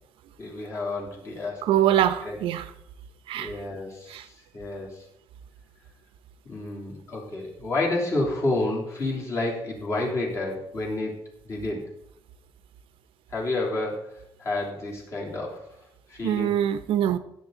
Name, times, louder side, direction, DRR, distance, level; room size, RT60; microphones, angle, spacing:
voice 1, 0.4-1.7 2.2-2.4 3.4-5.1 6.4-11.1 11.4-11.8 13.3-15.8 16.1-16.5, left 2 dB, 30° left, -3 dB, 3.3 m, -30 dB
voice 2, 1.6-2.7 3.3-3.5 4.1-4.2 16.2-17.2, right 11 dB, 90° right, 11 dB, 1.0 m, -23 dB
16.0 x 8.1 x 4.0 m, 0.76 s
cardioid pair, 175°, 9 cm